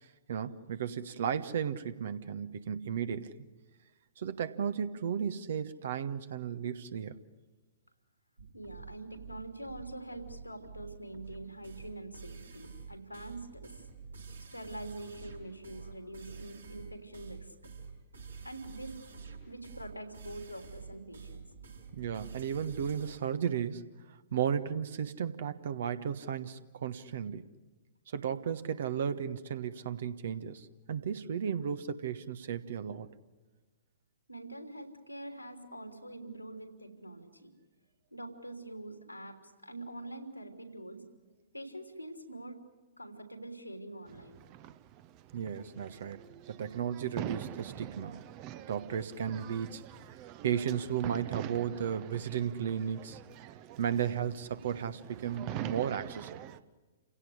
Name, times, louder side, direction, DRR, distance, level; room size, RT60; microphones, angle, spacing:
voice 1, 0.3-3.3 4.2-7.2 21.9-23.8 24.3-27.5 28.1-33.1 45.3-46.2 46.5-48.2 48.7-49.8 50.4-53.2 53.8-56.5, right 8 dB, 55° right, 12 dB, 1.2 m, -34 dB
sound 1, 8.4-23.2, right 5 dB, 75° right, 6.3 m, -48 dB
voice 2, 8.5-13.8 14.5-17.6 18.4-19.2 19.5-21.4 34.3-37.5 38.1-41.0 41.5-42.6 43.0-44.4, right 1 dB, 90° left, 6 dB, 3.4 m, -45 dB
sound 2, 44.1-56.6, right 12 dB, 30° right, 0.9 m, -45 dB
29.0 x 17.0 x 9.9 m, 1.2 s
figure-of-eight pair, 110°, 0 cm